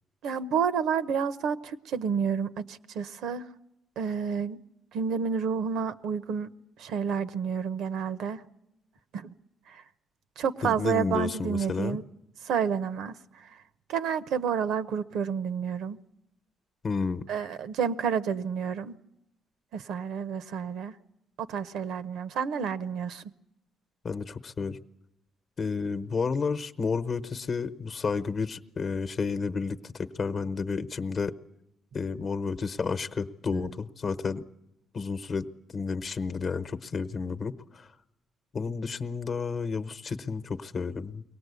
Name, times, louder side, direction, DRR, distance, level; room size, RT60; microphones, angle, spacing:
voice 1, 0.2-3.5 4.0-4.6 4.9-6.5 6.8-8.4 9.1-9.3 9.7-9.8 10.4-12.0 12.4-13.1 13.9-16.0 17.3-19.0 19.7-20.9 21.4-23.2, right 7 dB, 80° right, 0.8 m, -30 dB
voice 2, 10.6-12.0 16.8-17.3 24.0-24.8 25.6-31.4 31.9-34.4 34.9-35.5 35.7-37.9 38.5-41.2, left 5 dB, 45° left, 0.9 m, -31 dB
23.0 x 18.0 x 8.2 m
cardioid pair, 90°, 0 cm